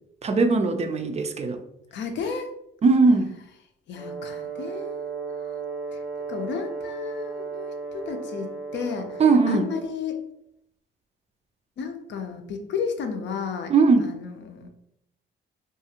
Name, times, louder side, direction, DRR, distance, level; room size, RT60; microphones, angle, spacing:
voice 1, 0.2-1.6 2.8-3.3 9.2-9.7 13.7-14.1, right 4 dB, 35° right, 6 dB, 0.3 m, -19 dB
voice 2, 1.9-2.5 3.9-5.6 6.3-9.2 9.5-10.2 11.8-13.7 14.0-14.7, left 6 dB, 65° left, 6 dB, 0.5 m, -33 dB
Brass instrument, 3.9-9.9, right 4 dB, ahead, 0.7 m, -35 dB
2.5 x 2.4 x 2.8 m, 0.76 s
cardioid pair, 90°, 20 cm